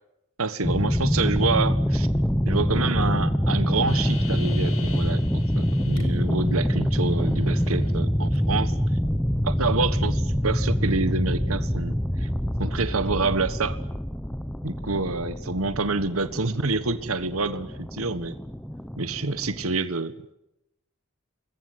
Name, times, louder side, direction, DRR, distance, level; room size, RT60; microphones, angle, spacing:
voice 1, 0.4-2.1 2.4-8.7 9.4-12.3 12.6-13.8 14.6-18.4 19.0-20.3, right 3 dB, 90° right, 12 dB, 1.5 m, -27 dB
sound 1, 0.6-19.8, equal, 5° left, 1.1 m, -25 dB
sound 2, 3.9-6.0 6.4-7.9 8.3-8.4, left 5 dB, 80° left, 5.9 m, -43 dB
28.0 x 21.5 x 9.6 m, 0.86 s
head